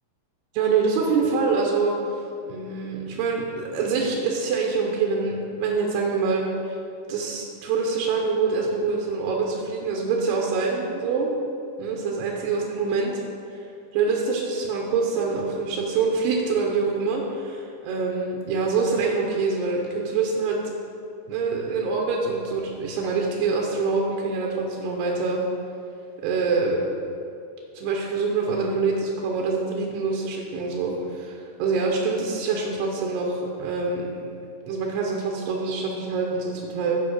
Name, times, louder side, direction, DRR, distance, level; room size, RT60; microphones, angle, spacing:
voice 1, 0.5-2.0 2.5-6.7 7.1-11.3 11.8-13.1 13.9-20.6 21.3-25.4 26.2-27.0 27.8-34.1 34.7-37.0, right 4 dB, 85° right, -1 dB, 2.4 m, -25 dB
8.8 x 5.0 x 6.2 m, 2.6 s
omnidirectional pair, 5.7 m